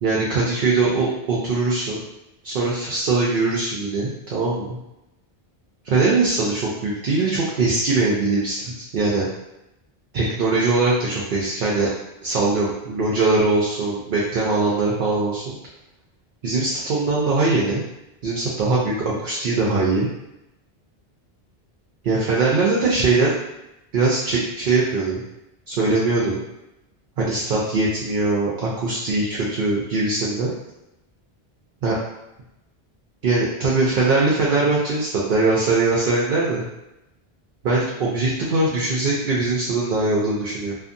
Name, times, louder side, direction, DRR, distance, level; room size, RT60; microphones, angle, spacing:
voice 1, 0.0-2.0 2.4-4.7 5.8-9.3 10.1-11.9 12.2-15.6 16.4-17.8 18.2-20.1 22.0-23.3 23.9-25.2 25.7-26.4 27.2-30.5 31.8-32.0 33.2-36.6 37.6-40.7, right 3 dB, 65° right, -5 dB, 0.7 m, -21 dB
2.6 x 2.5 x 2.5 m, 0.91 s
omnidirectional pair, 1.0 m